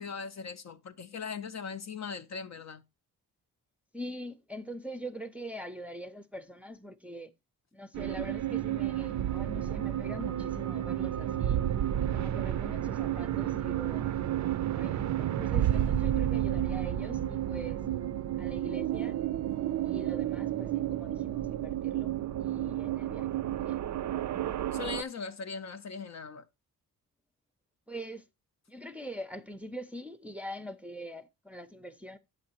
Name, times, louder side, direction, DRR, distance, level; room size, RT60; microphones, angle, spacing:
voice 1, 0.0-2.8 24.7-26.5, left 5 dB, 45° left, 0.6 m, -39 dB
voice 2, 3.9-7.3 7.7-11.6 12.1-14.1 14.7-17.8 18.4-19.2 19.8-23.8 27.9-28.2 28.7-32.2, equal, 5° right, 0.5 m, -43 dB
sound 1, 7.9-25.0, right 12 dB, 50° right, 0.5 m, -31 dB
8.6 x 6.5 x 2.9 m
cardioid pair, 75°, 37 cm